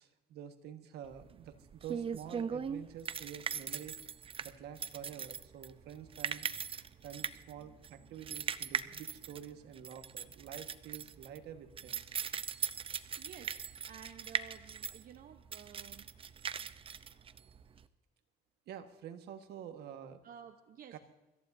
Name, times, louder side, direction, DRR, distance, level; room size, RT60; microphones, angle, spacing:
voice 1, 0.0-4.0 4.4-12.0 18.7-20.2 20.9-21.0, right 9 dB, 75° right, 7 dB, 1.6 m, -48 dB
sound 1, 1.1-17.8, right 7 dB, 30° right, 0.6 m, -40 dB
voice 2, 13.2-13.5 13.9-16.1 16.5-16.6 20.2-21.0, right 8 dB, 60° right, 6 dB, 0.9 m, -53 dB
25.0 x 14.5 x 2.7 m, 1.1 s
cardioid pair, 110°, 17 cm